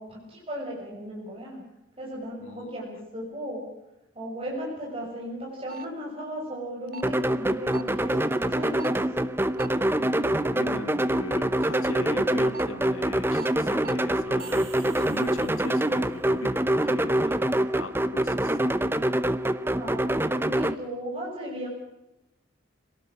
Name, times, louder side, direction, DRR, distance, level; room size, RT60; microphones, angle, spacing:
voice 1, 0.0-1.6 2.0-3.6 4.1-9.0 19.7-20.0 20.3-21.7, equal, 25° right, -3 dB, 6.6 m, -36 dB
voice 2, 2.4-2.8 9.9-17.3 17.8-18.8, left 2 dB, 80° left, 12 dB, 1.7 m, -40 dB
sound 1, 5.7-5.9 6.9-7.1 7.7-7.9 8.8-9.0 9.5-9.7 12.3-12.6 13.4-13.5 13.8-14.0 14.4-14.5, right 5 dB, 45° right, 0.9 m, -39 dB
sound 2, 7.0-20.7, right 1 dB, 10° right, 0.7 m, -25 dB
sound 3, 14.2-16.1, right 8 dB, 75° right, 2.9 m, -49 dB
26.5 x 18.0 x 6.2 m, 0.90 s
head